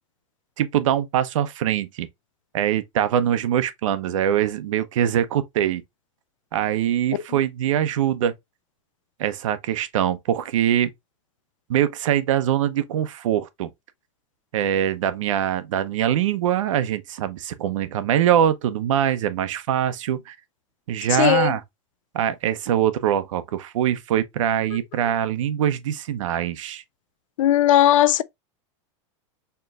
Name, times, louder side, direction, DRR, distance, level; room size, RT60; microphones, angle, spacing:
voice 1, 0.6-2.1 2.5-5.8 6.5-8.3 9.2-10.9 11.7-13.7 14.5-20.4 20.9-21.6 22.1-26.8, right 10 dB, 80° right, 0.7 m, -23 dB
voice 2, 21.1-21.5 27.4-28.2, left 12 dB, 85° left, 0.4 m, -17 dB
4.5 x 3.0 x 2.3 m
supercardioid pair, 165°, 16 cm